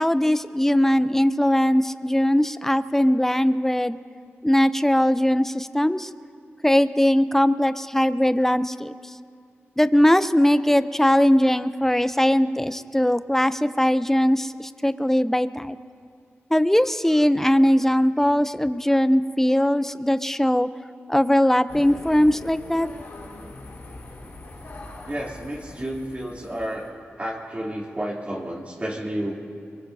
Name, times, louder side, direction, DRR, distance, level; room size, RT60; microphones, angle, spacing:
voice 1, 0.0-4.0 4.4-6.1 6.6-9.0 9.8-15.8 16.5-20.7 21.1-22.9, left 1 dB, 5° left, 13 dB, 0.6 m, -20 dB
sound 1, 21.7-26.9, left 2 dB, 80° left, 4.5 m, -41 dB
voice 2, 25.1-26.9 27.2-29.3, right 1 dB, 30° right, -5 dB, 3.1 m, -31 dB
23.5 x 22.0 x 2.7 m, 2.3 s
cardioid pair, 40°, 5 cm